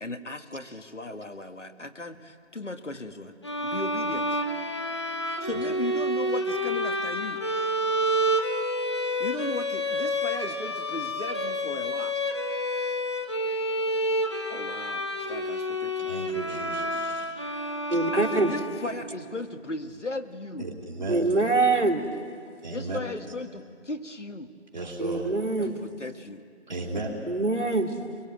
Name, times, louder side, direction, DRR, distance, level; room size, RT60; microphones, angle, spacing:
voice 1, 0.0-3.4 3.6-4.4 5.3-7.4 9.2-12.1 14.5-16.2 18.1-20.7 22.7-24.5 25.6-26.4, left 2 dB, 80° left, 7 dB, 1.8 m, -36 dB
sound 1, 3.4-19.1, equal, 25° left, 1.0 m, -29 dB
voice 2, 16.1-17.3 20.6-21.3 22.6-23.0 24.7-25.3 26.7-27.1, right 2 dB, 40° right, 0 dB, 3.2 m, -34 dB
voice 3, 17.9-18.5 21.1-22.0 25.0-25.8 27.3-27.9, right 3 dB, 80° right, 3 dB, 2.6 m, -24 dB
23.5 x 22.5 x 9.0 m, 2.2 s
figure-of-eight pair, 165°, 36 cm